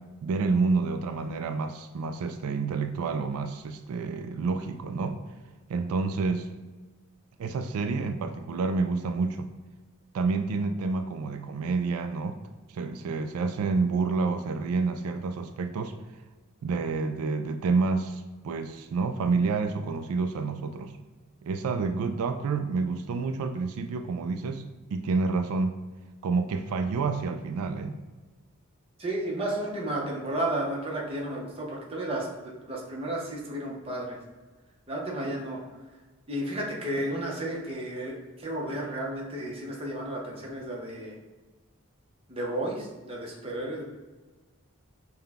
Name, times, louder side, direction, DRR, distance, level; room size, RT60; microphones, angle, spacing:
voice 1, 0.2-5.2 5.7-6.5 7.4-9.5 10.1-12.4 12.7-15.9 16.6-21.0 21.4-25.8 26.2-28.0, right 4 dB, 75° right, 8 dB, 0.3 m, -29 dB
voice 2, 29.0-34.2 34.9-35.6 36.3-41.2 42.3-43.8, right 1 dB, 25° right, -3 dB, 0.8 m, -32 dB
5.6 x 2.2 x 3.5 m, 1.3 s
head